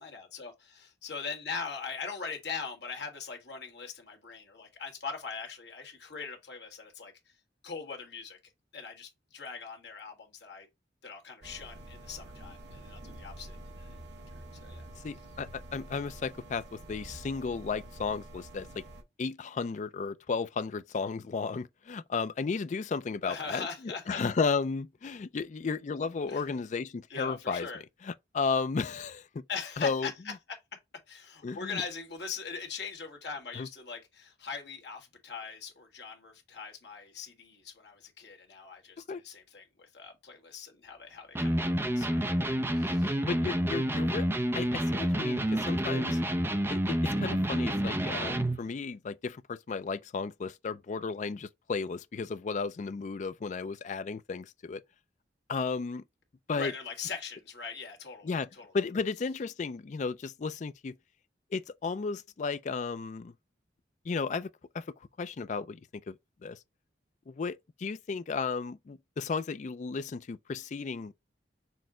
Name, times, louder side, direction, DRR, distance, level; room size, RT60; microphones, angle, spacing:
voice 1, 0.0-7.1 7.6-8.4 8.7-10.7 11.0-14.0 14.6-14.8 23.2-24.2 26.3-26.4 27.1-27.8 29.5-30.1 31.1-43.2 56.5-58.3 58.6-58.7, left 5 dB, 70° left, 1.6 m, -41 dB
sound 1, 11.4-19.0, right 1 dB, 75° right, 1.2 m, -47 dB
voice 2, 15.0-18.8 19.2-27.7 28.0-29.4 29.8-30.1 31.4-31.8 33.6-33.7 39.1-39.2 43.2-44.3 44.5-46.2 46.7-54.8 55.5-56.0 56.5-56.7 58.2-58.5 58.7-61.0 61.5-63.3 64.0-64.9 65.2-66.1 66.4-66.6 67.3-71.1, left 4 dB, 40° left, 0.4 m, -34 dB
Electric guitar, 41.4-48.7, right 1 dB, 15° right, 0.5 m, -29 dB
6.2 x 2.2 x 3.6 m
head